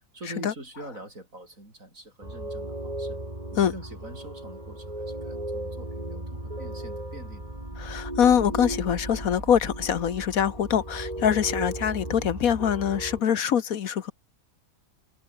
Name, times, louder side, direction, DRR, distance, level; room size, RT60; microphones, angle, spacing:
voice 1, 0.1-3.2 3.5-7.5, right 1 dB, 45° right, 7.5 m, -44 dB
sound 1, 2.2-13.2, right 1 dB, 20° right, 5.3 m, -36 dB
voice 2, 7.8-14.1, left 8 dB, 60° left, 1.3 m, -24 dB
omnidirectional pair, 1.9 m